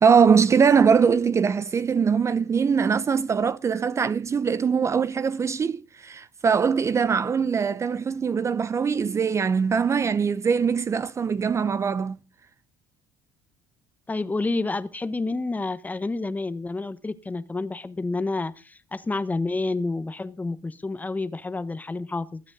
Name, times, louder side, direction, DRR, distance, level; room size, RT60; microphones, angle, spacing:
voice 1, 0.0-12.2, right 6 dB, 30° right, 0.6 m, -22 dB
voice 2, 14.1-22.4, left 3 dB, 15° left, 1.1 m, -29 dB
20.0 x 8.9 x 4.0 m
supercardioid pair, 85°, 10 cm